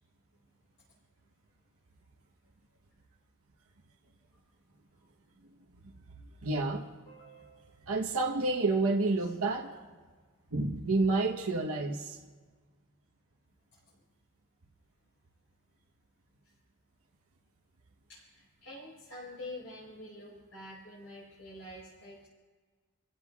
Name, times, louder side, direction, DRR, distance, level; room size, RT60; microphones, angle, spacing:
voice 1, 6.4-6.9 7.9-9.8 10.5-12.2, right 3 dB, 65° right, 0 dB, 1.0 m, -29 dB
voice 2, 7.1-7.9 9.2-9.3 13.7-13.8 16.4-16.5 18.1-22.3, left 1 dB, 60° left, -5 dB, 4.5 m, -47 dB
30.0 x 15.5 x 2.4 m, 1.5 s
head